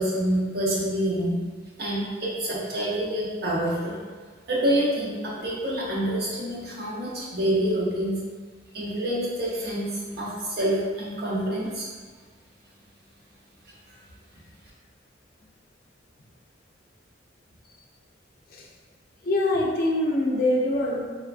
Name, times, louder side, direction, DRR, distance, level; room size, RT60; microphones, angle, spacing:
voice 1, 0.0-1.4 1.8-4.0 4.5-8.2 8.7-11.9, right 1 dB, 55° right, -5 dB, 0.7 m, -27 dB
voice 2, 19.2-21.0, left 1 dB, 50° left, -1 dB, 0.4 m, -24 dB
3.3 x 2.2 x 2.4 m, 1.5 s
head